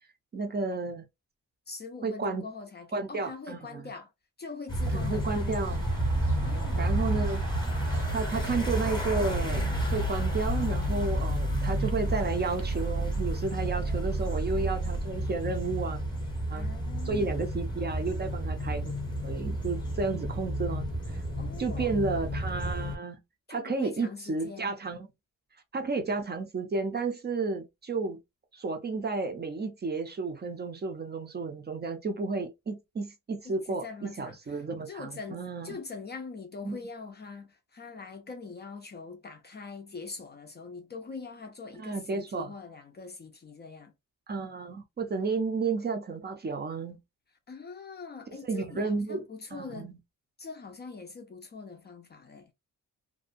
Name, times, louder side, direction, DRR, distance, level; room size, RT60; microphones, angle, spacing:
voice 1, 0.3-1.0 2.0-2.4 2.9-3.9 4.9-5.8 6.8-7.4 8.1-16.0 16.5-16.7 17.1-18.9 19.2-21.2 21.6-23.2 23.5-25.1 25.7-28.2 28.5-35.8 36.7-36.8 41.8-42.5 44.3-47.0 48.5-49.2 49.5-50.0, right 4 dB, 30° right, 0.4 m, -32 dB
voice 2, 1.7-4.1 4.4-5.6 6.4-6.9 16.5-17.3 21.4-22.0 23.5-24.9 33.4-43.9 47.5-49.9 50.4-52.5, left 4 dB, 30° left, 0.4 m, -43 dB
sound 1, 4.7-23.0, right 1 dB, 15° left, 0.7 m, -31 dB
sound 2, 4.8-10.9, equal, 90° right, 1.1 m, -38 dB
sound 3, 9.5-12.3 12.6-15.0, right 1 dB, 70° right, 0.7 m, -32 dB
2.5 x 2.1 x 2.4 m
wide cardioid pair, 160°, 33 cm